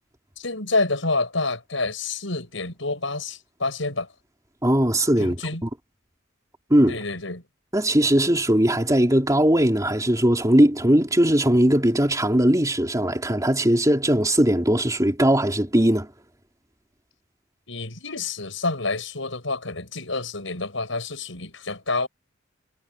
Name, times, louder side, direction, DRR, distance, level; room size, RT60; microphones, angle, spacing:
voice 1, 0.4-4.1 5.2-5.6 6.9-7.4 17.7-22.1, left 3 dB, 70° left, 7.0 m, -28 dB
voice 2, 4.6-5.7 6.7-7.0 7.7-16.1, right 1 dB, 15° right, 3.8 m, -19 dB
head